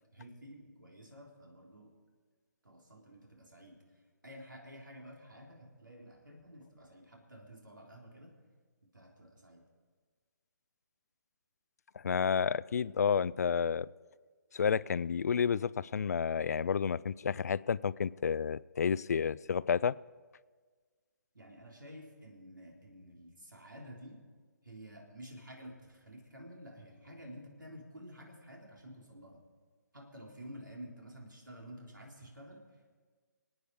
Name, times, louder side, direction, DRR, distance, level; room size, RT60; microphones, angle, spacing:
voice 1, 0.1-2.0 2.6-8.4 8.9-9.7 21.3-24.3 24.6-29.5 29.9-33.0, equal, 85° right, 0 dB, 3.6 m, -51 dB
voice 2, 12.0-13.9 14.5-20.0, left 7 dB, 55° left, 20 dB, 0.4 m, -30 dB
27.5 x 9.3 x 4.8 m, 1.5 s
figure-of-eight pair, 145°, 10 cm